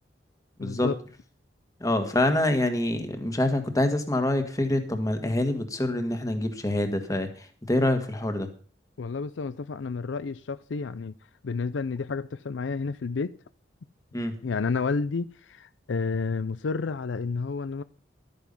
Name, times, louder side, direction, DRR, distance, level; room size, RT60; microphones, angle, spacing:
voice 1, 0.6-1.0 9.0-11.1 11.4-13.4 14.4-17.8, left 4 dB, 85° left, 0.5 m, -30 dB
voice 2, 1.8-8.5 14.1-14.4, left 1 dB, 20° left, 1.6 m, -26 dB
12.5 x 9.3 x 5.4 m
head